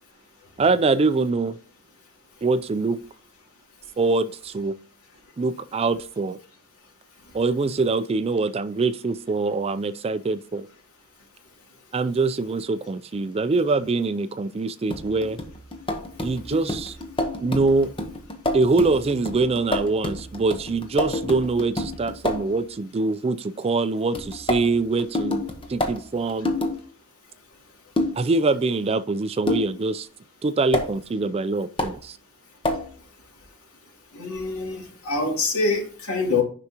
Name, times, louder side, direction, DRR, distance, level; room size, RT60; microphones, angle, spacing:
voice 1, 0.6-1.6 2.4-3.0 4.0-4.8 5.4-6.4 7.3-10.7 11.9-15.4 16.2-17.0 17.4-17.9 18.5-25.4 25.7-26.5 28.2-30.1 30.4-32.2, right 3 dB, 25° right, 0.3 m, -24 dB
sound 1, 14.9-22.5 24.1-26.8 28.0-28.3 29.5-29.8 30.7-30.9 31.8-32.0 32.6-32.9, left 1 dB, 25° left, 1.0 m, -28 dB
voice 2, 34.1-36.4, left 3 dB, 75° left, 2.7 m, -25 dB
9.7 x 5.9 x 2.9 m
head